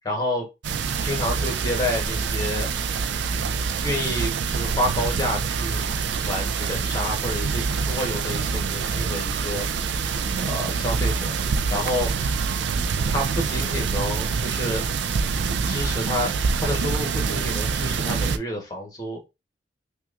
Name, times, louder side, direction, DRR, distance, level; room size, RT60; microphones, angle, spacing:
voice 1, 0.0-0.5 1.0-2.7 3.3-5.9 6.2-9.7 10.4-11.3 11.7-12.1 13.1-14.8 15.6-16.3 16.6-19.2, left 1 dB, 20° left, 1 dB, 1.1 m, -29 dB
sound 1, 0.6-18.4, right 5 dB, 90° right, 0.4 m, -25 dB
5.5 x 2.3 x 2.5 m, 0.25 s
head